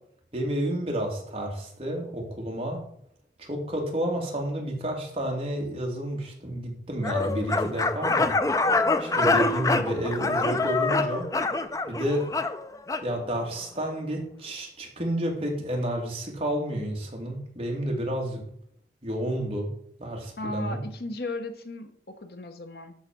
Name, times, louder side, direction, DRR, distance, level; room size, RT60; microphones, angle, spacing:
voice 1, 0.3-2.8 3.4-8.3 9.0-11.3 11.9-12.3 13.0-18.4 19.0-19.7 20.0-20.8, equal, 30° right, 0 dB, 2.3 m, -30 dB
sound 1, 7.0-13.1, left 3 dB, 20° left, 0.4 m, -25 dB
voice 2, 20.4-22.9, left 2 dB, 60° left, 7 dB, 1.0 m, -36 dB
12.5 x 4.2 x 6.0 m, 0.68 s
head